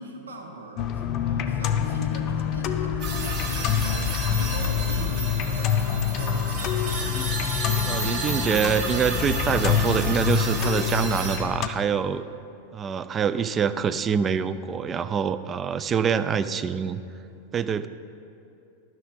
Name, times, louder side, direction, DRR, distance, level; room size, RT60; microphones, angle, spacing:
voice 1, 0.0-4.1 4.4-7.2, right 2 dB, 70° right, 2 dB, 0.9 m, -40 dB
sound 1, 0.8-11.7, left 8 dB, 35° left, 0.5 m, -26 dB
sound 2, 3.0-11.4, right 3 dB, 40° right, 1.4 m, -32 dB
voice 2, 7.9-12.2 12.7-17.0 17.5-17.9, right 7 dB, 25° right, 13 dB, 0.3 m, -25 dB
11.5 x 6.1 x 5.1 m, 2.7 s
figure-of-eight pair, 90°, 0 cm